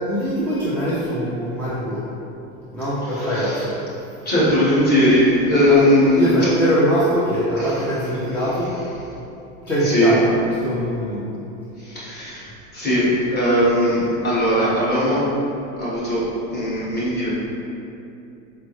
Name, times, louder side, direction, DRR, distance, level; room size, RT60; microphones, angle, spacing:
voice 1, 0.0-2.0 2.7-3.8 5.7-8.8 9.7-11.3 14.0-14.1, equal, 5° left, -11 dB, 0.3 m, -22 dB
voice 2, 3.0-3.7 4.2-6.4 7.6-7.8 9.8-10.2 11.8-15.3 15.8-17.3, left 1 dB, 25° left, -9 dB, 1.4 m, -19 dB
4.2 x 2.1 x 3.0 m, 2.8 s
hypercardioid pair, 105°, 41 cm